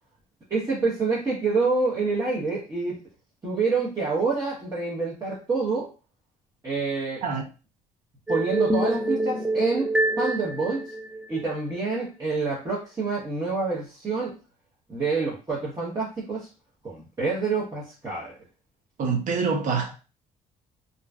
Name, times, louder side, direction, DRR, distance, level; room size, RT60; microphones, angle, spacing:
voice 1, 0.5-3.0 3.4-5.9 6.6-7.2 8.3-10.9 11.3-14.4 14.9-16.5 16.8-18.4, right 4 dB, 25° right, 0.8 m, -27 dB
sound 1, 8.3-11.6, right 1 dB, 10° right, 0.4 m, -26 dB
voice 2, 19.0-19.9, right 5 dB, 55° right, 0.7 m, -25 dB
2.5 x 2.2 x 2.2 m
supercardioid pair, 80°, 15 cm